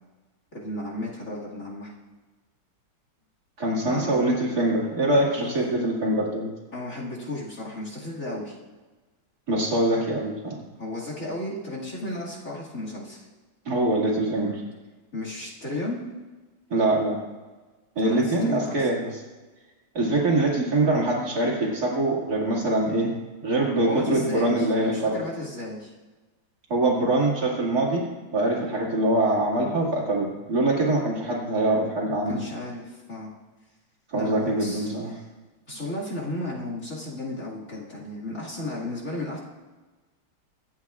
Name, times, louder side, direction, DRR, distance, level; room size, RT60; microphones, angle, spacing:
voice 1, 0.5-1.9 3.8-4.3 5.4-5.7 6.7-8.6 10.8-13.3 15.1-16.0 18.0-18.8 23.8-25.9 32.3-33.3 34.1-34.9 35.7-39.4, left 1 dB, 40° left, -3 dB, 2.4 m, -34 dB
voice 2, 3.6-6.5 9.5-10.6 13.7-14.6 16.7-17.2 18.0-19.0 19.9-23.1 23.4-25.2 26.7-28.1 28.3-32.3 34.1-35.2, right 2 dB, 50° right, -4 dB, 2.7 m, -24 dB
24.5 x 8.7 x 2.4 m, 1.3 s
omnidirectional pair, 2.2 m